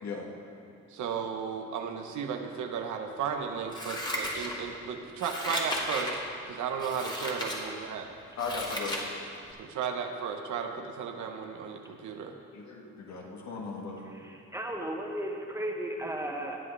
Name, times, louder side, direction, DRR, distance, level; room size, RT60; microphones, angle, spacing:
voice 1, 0.9-8.1 9.6-12.4, right 6 dB, 75° right, 4 dB, 1.1 m, -35 dB
Scissors, 3.7-4.8 5.2-6.2 6.8-7.6 8.0-9.1 9.5-9.6, equal, 15° left, 1.9 m, -34 dB
voice 2, 8.4-9.0 12.5-14.1, left 4 dB, 65° left, -1 dB, 1.9 m, -37 dB
voice 3, 14.0-16.6, right 1 dB, 10° right, 0 dB, 1.6 m, -35 dB
19.0 x 7.4 x 3.4 m, 2.7 s
cardioid pair, 90°, 30 cm